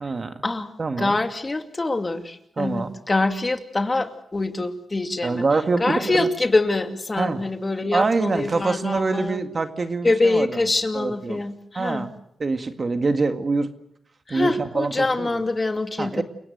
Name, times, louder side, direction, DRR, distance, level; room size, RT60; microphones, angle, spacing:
voice 1, 0.0-0.3 0.8-1.2 2.6-3.0 5.2-6.3 7.2-7.4 7.9-10.6 10.9-11.4 11.8-12.1 12.4-13.7 14.3-15.4 16.0-16.2, right 3 dB, 45° right, 8 dB, 2.0 m, -25 dB
voice 2, 1.0-5.4 5.8-9.4 10.0-12.1 14.3-16.2, left 2 dB, 30° left, 6 dB, 2.5 m, -24 dB
29.0 x 17.5 x 8.0 m, 0.75 s
cardioid pair, 70°, 0 cm